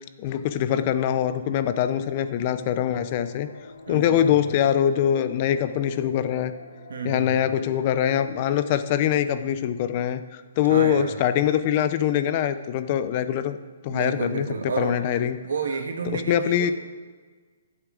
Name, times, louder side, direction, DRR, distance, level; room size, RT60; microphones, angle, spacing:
voice 1, 0.2-3.5 3.9-6.5 7.0-13.6 13.8-14.5 14.8-15.4 16.1-16.7, left 10 dB, 35° left, 12 dB, 0.6 m, -23 dB
sound 1, 1.3-9.3, left 5 dB, 70° left, 1.3 m, -45 dB
voice 2, 3.9-4.4 6.9-7.4 10.6-11.1 13.9-15.0 15.4-16.7, right 5 dB, 80° right, 4 dB, 1.6 m, -30 dB
14.0 x 8.1 x 3.8 m, 1.4 s
hypercardioid pair, 155°, 0 cm